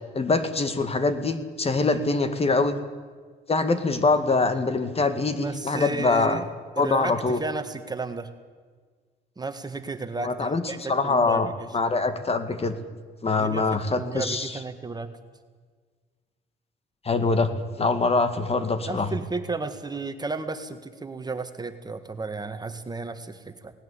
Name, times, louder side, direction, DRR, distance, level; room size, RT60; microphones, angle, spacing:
voice 1, 0.1-2.8 3.5-6.4 6.8-7.4 10.2-12.8 13.2-14.5 17.0-17.5 17.8-19.1, left 3 dB, 35° left, 10 dB, 2.0 m, -24 dB
voice 2, 5.4-6.4 6.8-8.3 9.4-11.7 13.4-15.1 18.9-23.7, right 3 dB, 20° right, 9 dB, 1.7 m, -33 dB
18.5 x 18.0 x 8.6 m, 1.5 s
cardioid pair, 85°, 18 cm